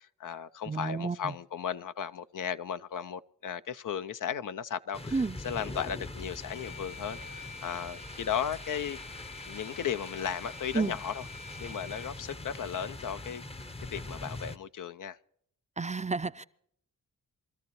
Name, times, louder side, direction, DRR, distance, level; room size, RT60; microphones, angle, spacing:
voice 1, 0.0-9.0 9.5-11.3 11.6-13.4 13.9-15.2, left 8 dB, 60° left, 0.6 m, -36 dB
voice 2, 0.7-1.3 5.1-5.4 10.7-11.0 15.8-16.4, right 4 dB, 20° right, 0.5 m, -31 dB
sound 1, 4.9-14.6, left 2 dB, 15° left, 0.7 m, -43 dB
Bowed string instrument, 6.5-12.2, left 3 dB, 85° left, 2.3 m, -48 dB
23.5 x 13.5 x 3.1 m
cardioid pair, 45°, 35 cm